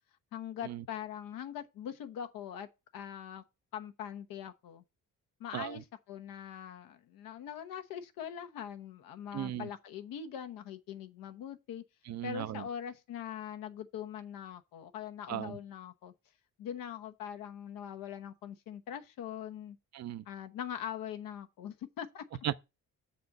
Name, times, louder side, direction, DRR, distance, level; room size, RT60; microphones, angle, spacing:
voice 1, 0.3-2.7 2.9-3.4 3.7-4.8 5.4-11.8 12.2-16.1 16.6-19.8 20.3-22.2, left 9 dB, 85° left, 1.1 m, -42 dB
voice 2, 9.3-9.7 12.1-12.6 15.3-15.6 19.9-20.2 22.4-22.5, right 12 dB, 50° right, 0.5 m, -36 dB
7.1 x 4.3 x 6.5 m
cardioid pair, 105°, 33 cm